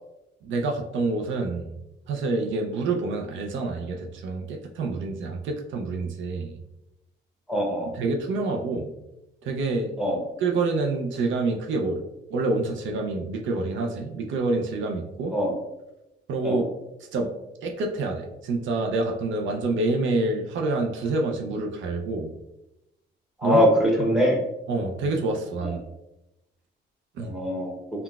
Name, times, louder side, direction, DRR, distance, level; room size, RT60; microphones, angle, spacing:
voice 1, 0.4-1.7 2.1-6.6 7.9-8.9 9.4-9.9 10.4-12.0 12.3-15.4 16.3-16.7 17.1-17.3 17.6-22.3 23.4-23.6 24.0-24.2 24.7-25.8 27.1-27.3, right 3 dB, 75° right, 2 dB, 0.5 m, -27 dB
voice 2, 7.5-7.9 10.0-10.2 15.3-15.5 16.4-16.6 23.4-24.4 25.6-25.7 27.2-27.7, equal, 5° right, -2 dB, 0.8 m, -22 dB
3.8 x 2.2 x 2.3 m, 0.91 s
cardioid pair, 90°, 20 cm